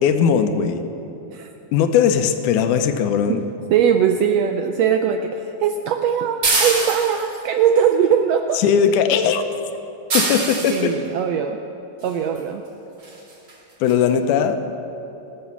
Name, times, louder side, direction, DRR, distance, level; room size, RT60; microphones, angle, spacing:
voice 1, 0.0-0.8 1.7-3.4 8.6-9.4 10.1-10.9 13.8-14.6, left 7 dB, 85° left, 8 dB, 2.2 m, -18 dB
voice 2, 3.7-8.6 10.7-11.6 12.0-12.6, right 8 dB, 85° right, 6 dB, 1.4 m, -20 dB
sound 1, 6.4-7.4 10.1-10.9 12.4-12.5 13.0-13.2 13.5-13.6 13.9-14.0, right 3 dB, 40° right, 2.8 m, -22 dB
18.5 x 6.4 x 7.2 m, 2.9 s
omnidirectional pair, 3.5 m